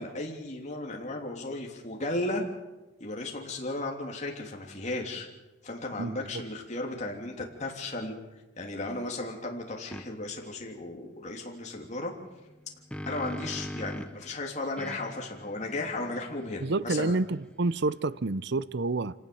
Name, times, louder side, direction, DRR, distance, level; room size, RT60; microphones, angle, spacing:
voice 1, 0.0-2.4 3.0-5.3 5.6-8.1 8.6-12.1 13.0-17.2, left 2 dB, 40° left, 3.2 m, -35 dB
sound 1, 9.9-10.1 12.5-14.2 14.8-18.1, left 1 dB, 5° left, 0.8 m, -42 dB
voice 2, 16.6-19.1, right 3 dB, 60° right, 0.7 m, -28 dB
26.5 x 18.0 x 7.0 m
head